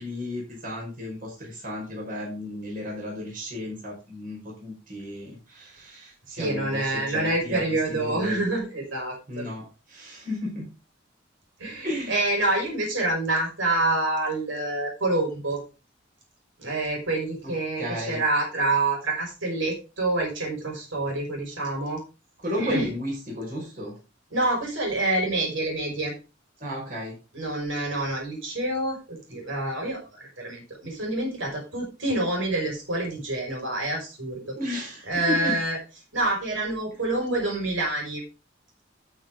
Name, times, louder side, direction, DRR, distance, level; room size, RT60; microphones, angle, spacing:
voice 1, 0.0-7.6 7.9-8.4 9.3-10.7 11.8-12.2 17.4-18.2 22.4-24.0 26.6-27.2 34.6-35.6, left 1 dB, 45° right, -3 dB, 5.2 m, -33 dB
voice 2, 6.4-9.5 11.6-15.6 16.6-22.0 22.6-22.9 24.3-26.1 27.3-34.6 35.1-35.8 36.1-38.2, right 2 dB, 75° right, 0 dB, 5.9 m, -27 dB
13.0 x 6.8 x 3.8 m, 0.31 s
head